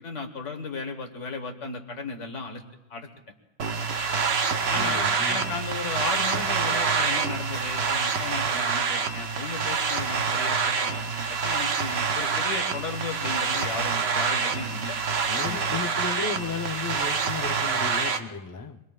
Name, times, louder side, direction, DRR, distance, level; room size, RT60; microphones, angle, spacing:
voice 1, 0.0-2.6 2.9-3.1 3.6-3.7 4.1-4.2 4.7-15.0 15.4-15.8, left 4 dB, 75° left, 4 dB, 1.7 m, -35 dB
sound 1, 3.6-18.2, right 5 dB, 60° right, 1.1 m, -26 dB
voice 2, 4.7-5.4 15.3-18.8, left 5 dB, 25° left, 5 dB, 0.5 m, -34 dB
27.0 x 21.0 x 2.4 m, 0.97 s
omnidirectional pair, 1.3 m